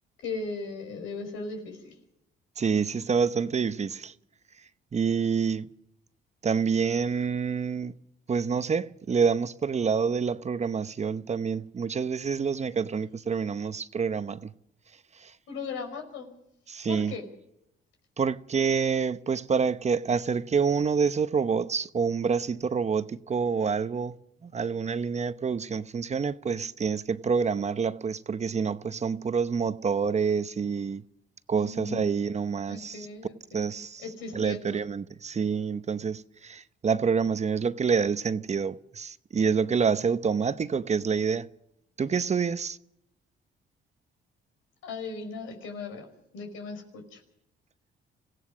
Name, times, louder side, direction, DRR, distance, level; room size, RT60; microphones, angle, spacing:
voice 1, 0.2-2.0 15.5-16.3 16.9-17.2 31.6-32.1 32.7-33.7 34.0-34.8 44.8-46.1 46.3-47.2, left 3 dB, 90° left, 5.3 m, -37 dB
voice 2, 2.6-4.1 4.9-5.7 6.4-7.9 8.3-14.5 15.2-15.3 16.7-17.1 18.2-31.0 31.5-33.1 33.5-34.0 34.3-41.5 42.0-42.8, right 6 dB, 35° right, 0.8 m, -27 dB
26.5 x 16.5 x 6.2 m
cardioid pair, 90°, 20 cm